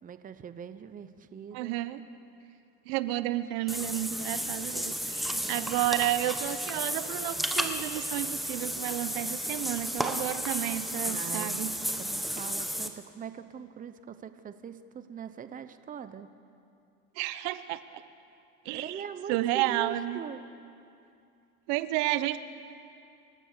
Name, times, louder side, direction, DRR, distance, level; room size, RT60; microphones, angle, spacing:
voice 1, 0.0-1.8 5.4-5.8 11.0-16.3 18.7-20.4, right 7 dB, 25° right, 11 dB, 0.9 m, -42 dB
voice 2, 1.5-2.0 2.9-11.7 17.2-17.8 18.6-19.0 19.3-20.2 21.7-22.4, right 15 dB, 75° right, 13 dB, 1.0 m, -31 dB
Water / Bathtub (filling or washing), 3.7-12.9, equal, ahead, 1.2 m, -33 dB
29.0 x 15.0 x 6.7 m, 2.5 s
supercardioid pair, 125°, 33 cm